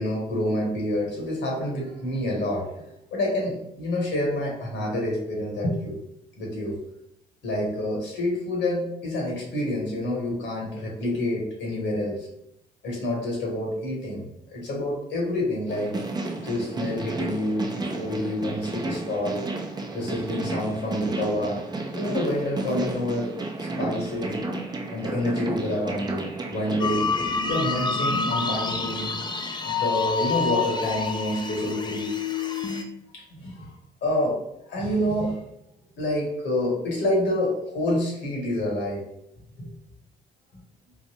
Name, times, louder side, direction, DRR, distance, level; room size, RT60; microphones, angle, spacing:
voice 1, 0.0-6.0 6.4-6.8 7.4-12.3 12.8-15.9 16.4-19.4 19.9-21.6 21.9-23.3 23.6-24.3 24.9-27.1 27.5-29.2 29.6-32.1 33.1-33.7 34.0-34.4 34.7-35.4 36.0-39.0 39.6-39.7, left 1 dB, 70° left, -2 dB, 1.4 m, -28 dB
sound 1, 15.7-26.8, right 2 dB, 20° right, 0.6 m, -32 dB
sound 2, 26.8-32.8, left 4 dB, 25° left, 0.5 m, -27 dB
3.9 x 2.2 x 2.9 m, 0.78 s
hypercardioid pair, 50°, 19 cm